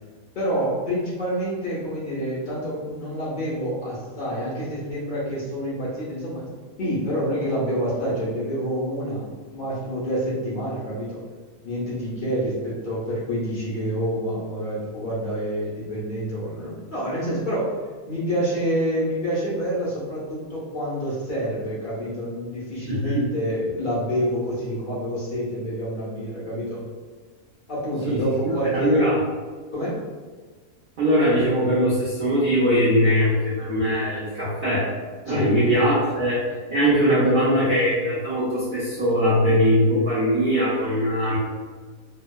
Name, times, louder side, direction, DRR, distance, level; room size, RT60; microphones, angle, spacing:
voice 1, 0.3-6.5 6.8-9.2 9.5-11.2 11.6-17.7 18.1-26.8 27.7-29.1 29.7-30.0 35.3-35.6, equal, 55° left, -8 dB, 0.5 m, -27 dB
voice 2, 22.8-23.3 28.0-29.2 31.0-34.9 35.3-36.4 36.7-41.4, equal, 55° right, -9 dB, 0.5 m, -21 dB
3.0 x 2.0 x 2.2 m, 1.4 s
omnidirectional pair, 1.6 m